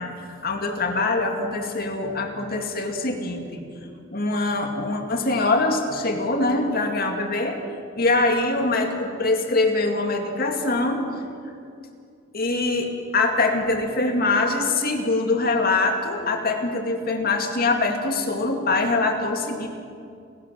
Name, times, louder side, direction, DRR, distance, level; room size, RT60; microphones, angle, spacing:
voice 1, 0.0-3.6 4.1-7.6 7.9-11.1 12.3-19.7, left 2 dB, 50° left, 4 dB, 2.2 m, -23 dB
30.0 x 11.5 x 7.5 m, 2.4 s
head